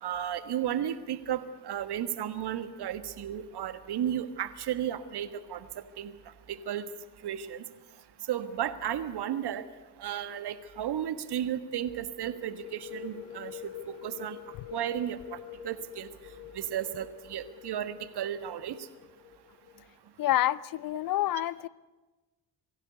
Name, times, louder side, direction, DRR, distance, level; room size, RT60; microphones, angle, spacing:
voice 1, 0.0-6.1 6.5-6.8 7.2-7.6 8.3-9.6 10.0-14.4 14.7-15.4 15.6-16.1 16.5-18.8, right 10 dB, 55° right, 12 dB, 1.5 m, -34 dB
sound 1, 12.2-19.8, left 11 dB, 85° left, 0.9 m, -46 dB
voice 2, 20.2-21.7, left 14 dB, 50° left, 21 dB, 0.6 m, -28 dB
22.5 x 15.5 x 8.3 m, 1.2 s
hypercardioid pair, 45°, 46 cm